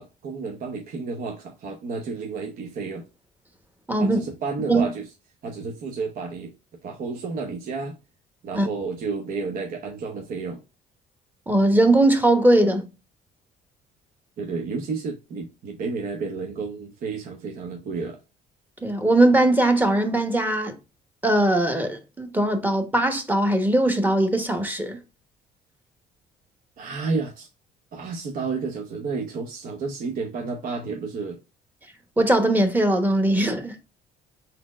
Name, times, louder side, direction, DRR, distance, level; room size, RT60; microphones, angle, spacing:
voice 1, 0.0-3.1 4.0-5.1 5.4-6.5 6.8-8.0 8.4-10.6 14.4-18.2 26.8-27.5 27.9-31.4, right 4 dB, 55° right, 0.9 m, -31 dB
voice 2, 3.9-4.2 4.7-4.8 8.5-8.7 11.5-12.9 18.8-20.7 21.2-25.0 32.2-33.7, right 1 dB, 10° right, 1.0 m, -20 dB
4.3 x 4.1 x 2.4 m
cardioid pair, 110°, 17 cm